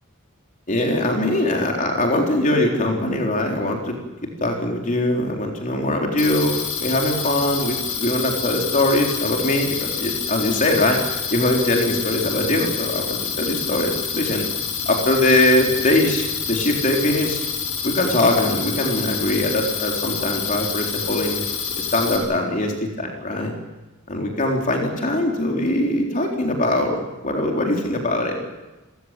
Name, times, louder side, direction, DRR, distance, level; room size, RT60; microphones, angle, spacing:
voice 1, 0.7-4.0 4.4-11.0 11.3-14.5 14.9-17.4 17.8-21.4 21.8-23.5 24.1-28.4, left 1 dB, 40° left, 1 dB, 3.9 m, -22 dB
sound 1, 6.2-22.2, left 6 dB, 80° left, 6.3 m, -27 dB
29.0 x 15.0 x 9.1 m, 1.1 s
head